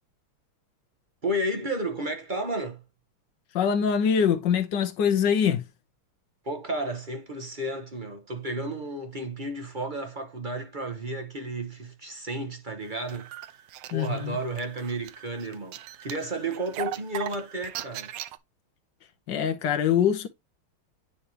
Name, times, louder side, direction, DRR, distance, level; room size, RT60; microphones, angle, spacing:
voice 1, 1.2-2.8 6.4-13.3 13.9-18.1, right 1 dB, 30° right, 0.9 m, -32 dB
voice 2, 3.5-5.6 13.9-14.4 19.3-20.3, left 8 dB, 65° left, 1.4 m, -23 dB
sound 1, 12.9-18.4, right 14 dB, 75° right, 1.2 m, -39 dB
10.0 x 3.4 x 2.8 m
omnidirectional pair, 2.3 m